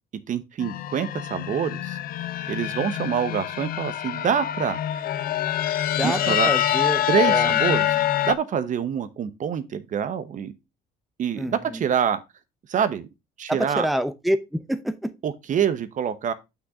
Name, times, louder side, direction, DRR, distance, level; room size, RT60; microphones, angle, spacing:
voice 1, 0.3-2.0 2.5-4.8 6.0-6.5 7.1-7.8 8.2-10.5 11.2-12.2 12.7-13.1 13.4-13.9 15.2-16.3, right 8 dB, 50° right, 1.0 m, -26 dB
sound 1, 0.6-8.3, left 12 dB, 60° left, 0.7 m, -25 dB
voice 2, 6.0-7.6 11.4-11.8 13.5-15.1, equal, ahead, 0.7 m, -27 dB
6.1 x 6.0 x 4.9 m
cardioid pair, 110°, 17 cm